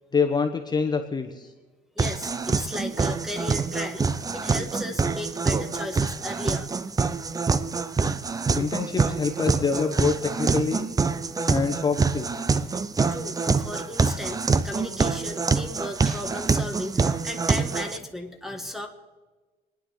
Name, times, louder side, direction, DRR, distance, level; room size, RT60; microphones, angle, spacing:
voice 1, 0.1-1.5 8.5-10.9 11.5-12.6, left 5 dB, 25° left, 4 dB, 1.2 m, -26 dB
voice 2, 1.9-4.1 4.3-6.8 12.6-12.8 13.1-18.9, left 1 dB, ahead, 6 dB, 1.5 m, -36 dB
sound 1, 2.0-18.0, right 4 dB, 20° right, 0.6 m, -26 dB
28.5 x 10.0 x 4.0 m, 1.2 s
cardioid pair, 110°, 17 cm